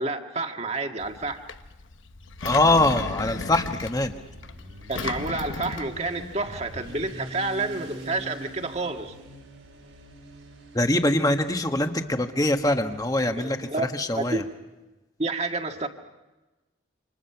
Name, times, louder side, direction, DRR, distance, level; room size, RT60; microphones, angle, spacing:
voice 1, 0.0-1.4 4.9-9.1 13.4-14.4 15.2-15.9, right 3 dB, 35° right, 4 dB, 1.8 m, -29 dB
Engine, 1.0-7.1, left 4 dB, 75° left, 1.0 m, -37 dB
Motorcycle, 2.0-13.7, right 1 dB, 85° right, 5.9 m, -45 dB
voice 2, 2.4-4.1 10.7-14.4, left 2 dB, 20° left, 6 dB, 1.4 m, -23 dB
28.5 x 27.0 x 5.8 m, 1.1 s
head